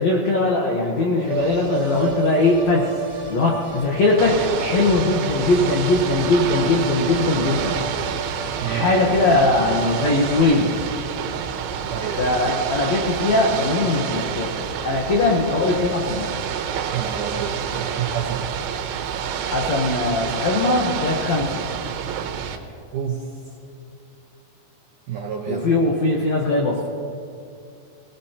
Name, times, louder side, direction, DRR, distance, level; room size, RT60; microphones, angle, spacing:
voice 1, 0.0-2.9 3.3-7.8 8.7-10.7 12.2-16.4 19.4-21.6 25.5-26.9, left 2 dB, 85° left, -1 dB, 1.5 m, -20 dB
sound 1, 1.2-10.4, right 5 dB, 60° right, 1.5 m, -32 dB
Ocean / Boat Water vehicle, 4.2-22.6, right 8 dB, 90° right, 3.3 m, -28 dB
voice 2, 11.9-12.3 16.9-18.5 22.9-23.3 25.1-25.7, right 7 dB, 75° right, -1 dB, 1.9 m, -29 dB
22.5 x 18.5 x 3.0 m, 2.6 s
omnidirectional pair, 5.3 m